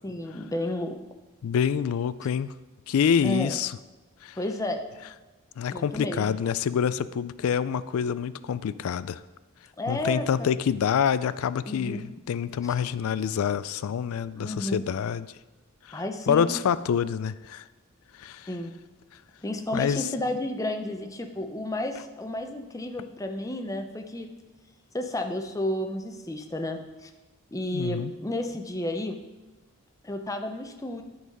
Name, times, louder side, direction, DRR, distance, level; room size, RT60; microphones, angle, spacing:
voice 1, 0.0-1.0 3.2-3.5 4.4-4.8 5.7-6.4 9.8-10.5 11.7-12.1 12.6-12.7 14.4-14.8 15.9-16.6 18.5-18.7 19.4-24.3 24.9-27.1 27.5-29.2 30.0-31.0, left 1 dB, 15° left, 5 dB, 0.6 m, -32 dB
voice 2, 1.4-2.5 2.9-3.7 4.2-4.4 5.6-9.2 9.9-15.3 15.9-17.6 18.2-18.5 19.7-20.1 27.7-28.1, left 7 dB, 75° left, 16 dB, 0.3 m, -27 dB
11.0 x 4.0 x 5.3 m, 1.1 s
head